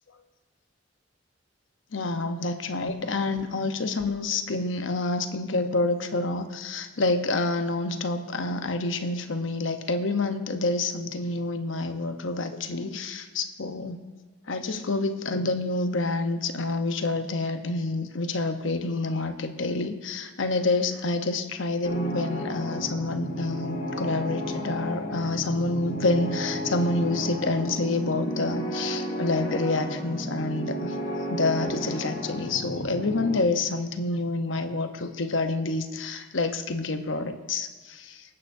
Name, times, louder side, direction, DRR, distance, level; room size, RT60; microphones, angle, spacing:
voice 1, 1.9-14.0 14.5-31.0 31.3-38.2, left 2 dB, 70° left, 7 dB, 0.9 m, -28 dB
sound 1, 21.8-33.4, equal, 55° left, 2.3 m, -33 dB
24.5 x 8.8 x 2.7 m, 1.4 s
head